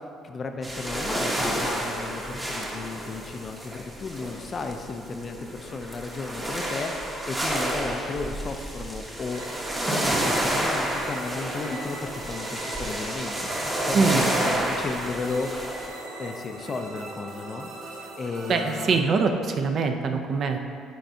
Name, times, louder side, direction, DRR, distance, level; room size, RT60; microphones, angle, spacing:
voice 1, 0.2-9.4 9.9-13.5 13.9-15.5 16.2-17.7 18.2-19.0, left 4 dB, 30° left, 6 dB, 0.4 m, -34 dB
sound 1, 0.6-15.9, right 1 dB, 10° right, 0.8 m, -30 dB
sound 2, 9.3-19.0, right 2 dB, 85° right, 1.1 m, -40 dB
voice 2, 13.9-14.2 18.5-20.6, right 4 dB, 40° right, 5 dB, 0.4 m, -23 dB
10.0 x 4.6 x 2.7 m, 2.3 s
cardioid pair, 155°, 0 cm